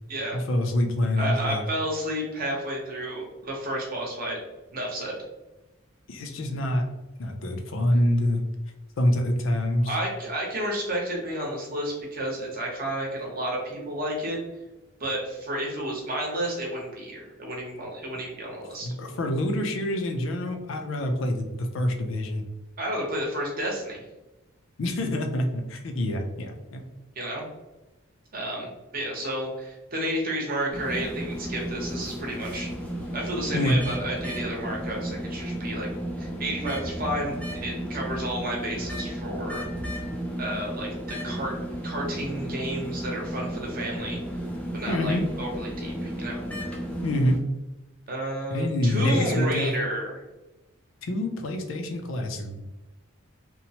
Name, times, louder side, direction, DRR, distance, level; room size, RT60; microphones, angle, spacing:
voice 1, 0.3-1.6 6.1-6.8 7.2-8.4 9.0-9.9 18.8-22.4 24.8-26.8 33.5-33.8 44.9-45.2 47.0-47.4 48.5-49.8 51.0-52.6, left 1 dB, 70° left, 5 dB, 0.5 m, -26 dB
voice 2, 1.2-4.4 4.7-5.2 9.9-14.4 15.0-18.9 22.8-24.0 27.1-27.4 28.3-32.7 33.1-35.9 36.2-39.6 40.4-41.5 41.8-44.2 44.7-46.4 48.1-50.2, right 1 dB, 45° right, -2 dB, 0.8 m, -31 dB
sound 1, 30.7-47.4, equal, 5° left, 0.3 m, -34 dB
2.9 x 2.0 x 2.8 m, 1.0 s
head